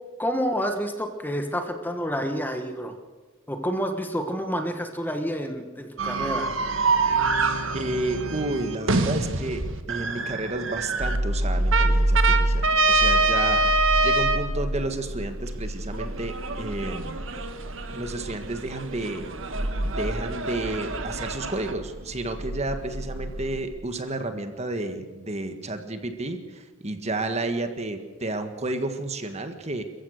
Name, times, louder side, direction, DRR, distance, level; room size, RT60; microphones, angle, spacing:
voice 1, 0.2-3.0 3.5-6.5, equal, 10° left, 5 dB, 1.4 m, -29 dB
sound 1, 6.0-11.2 11.7-14.5 15.9-21.7, right 3 dB, 70° right, 1.7 m, -26 dB
voice 2, 7.7-13.8 14.0-17.2 17.9-19.3 19.8-29.8, right 2 dB, 30° right, 7 dB, 1.6 m, -31 dB
sound 2, 11.0-23.6, right 1 dB, 90° right, 2.7 m, -29 dB
28.5 x 15.0 x 6.5 m, 1.3 s
head